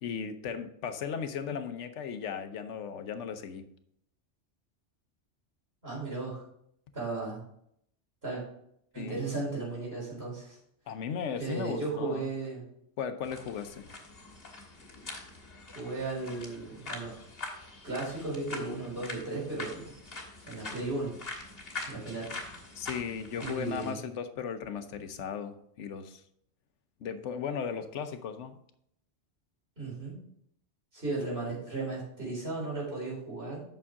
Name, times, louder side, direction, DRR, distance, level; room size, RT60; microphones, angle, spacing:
voice 1, 0.0-3.6 9.0-9.2 10.9-12.3 13.0-13.9 22.8-26.2 27.0-28.6, left 7 dB, 90° left, 1.1 m, -36 dB
voice 2, 5.8-6.4 6.9-7.4 8.2-8.4 8.9-10.6 11.4-12.7 15.7-17.3 17.8-19.9 20.5-21.1 21.9-22.4 23.4-24.0 29.8-30.2 30.9-33.6, right 3 dB, 60° right, 4.2 m, -35 dB
sound 1, 13.2-23.9, left 3 dB, 55° left, 1.7 m, -44 dB
8.6 x 6.2 x 3.6 m
omnidirectional pair, 1.2 m